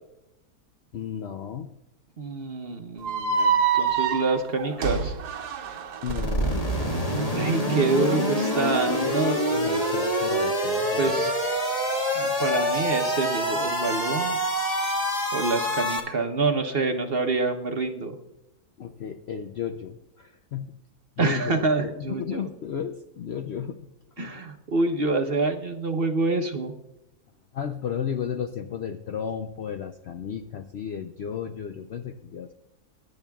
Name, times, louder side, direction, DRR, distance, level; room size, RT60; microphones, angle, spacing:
voice 1, 0.9-1.8 6.0-6.7 8.9-11.3 18.8-20.8 21.2-23.9 24.2-24.4 27.5-32.5, left 8 dB, 65° left, 7 dB, 0.6 m, -34 dB
voice 2, 2.2-5.2 7.3-9.4 11.0-11.4 12.1-14.4 15.3-18.2 21.2-22.5 24.2-26.7, right 3 dB, 45° right, 5 dB, 0.9 m, -26 dB
sound 1, 3.0-6.2, right 6 dB, 85° right, 1.4 m, -26 dB
sound 2, 6.1-16.0, equal, 25° left, 1.7 m, -26 dB
22.5 x 10.5 x 2.3 m, 0.90 s
omnidirectional pair, 1.7 m